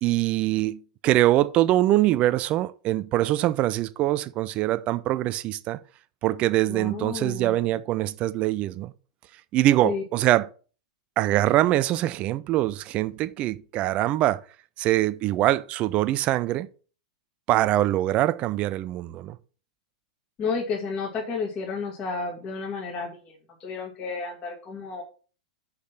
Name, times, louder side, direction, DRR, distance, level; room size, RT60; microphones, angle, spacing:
voice 1, 0.0-5.8 6.2-8.9 9.5-10.5 11.2-14.4 14.8-16.7 17.5-19.4, right 15 dB, 35° right, 0.5 m, -23 dB
voice 2, 6.7-7.8 9.8-10.0 20.4-25.0, left 4 dB, 30° left, 2.3 m, -32 dB
6.5 x 5.1 x 5.8 m
figure-of-eight pair, 95°, 4 cm